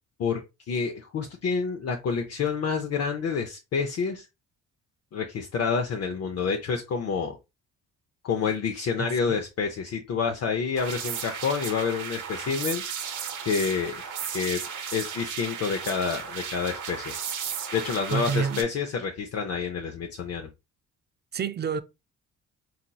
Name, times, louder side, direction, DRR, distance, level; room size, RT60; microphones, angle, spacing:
voice 1, 0.7-4.3 5.1-7.4 8.2-12.8 13.5-14.0 14.3-14.6 14.9-17.1 17.7-20.5, left 5 dB, 55° left, 0.6 m, -28 dB
voice 2, 9.0-9.4 18.1-18.6 21.3-21.8, right 6 dB, 35° right, 0.4 m, -28 dB
sound 1, 10.8-18.6, right 7 dB, 85° right, 0.9 m, -35 dB
4.0 x 2.9 x 2.3 m
cardioid pair, 90°, 30 cm